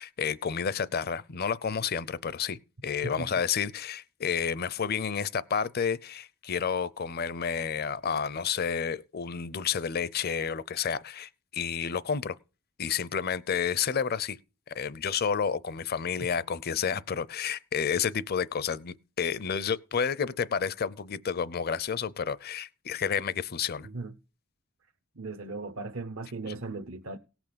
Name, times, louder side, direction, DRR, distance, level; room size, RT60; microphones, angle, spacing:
voice 1, 0.0-12.4 12.8-14.4 14.7-23.9, left 7 dB, 50° left, 0.6 m, -30 dB
voice 2, 23.8-24.1 25.2-27.2, right 3 dB, 75° right, 0.9 m, -37 dB
17.5 x 6.1 x 6.8 m
head